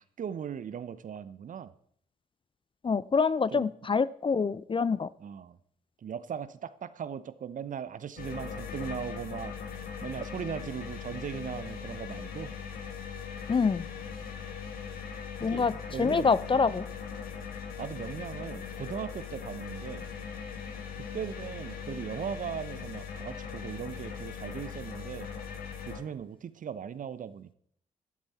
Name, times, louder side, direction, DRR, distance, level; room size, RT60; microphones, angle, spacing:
voice 1, 0.0-1.7 3.5-3.7 5.2-5.6 6.0-9.5 10.0-12.5 15.4-16.6 17.8-20.1 21.0-25.3 25.9-27.5, right 8 dB, 50° right, 15 dB, 0.9 m, -38 dB
voice 2, 2.8-5.1 13.5-13.9 15.4-16.9, left 5 dB, 30° left, 18 dB, 0.6 m, -26 dB
sound 1, 8.2-26.0, left 6 dB, 60° left, 2.5 m, -40 dB
13.5 x 12.0 x 4.3 m, 0.64 s
hypercardioid pair, 40°, 17 cm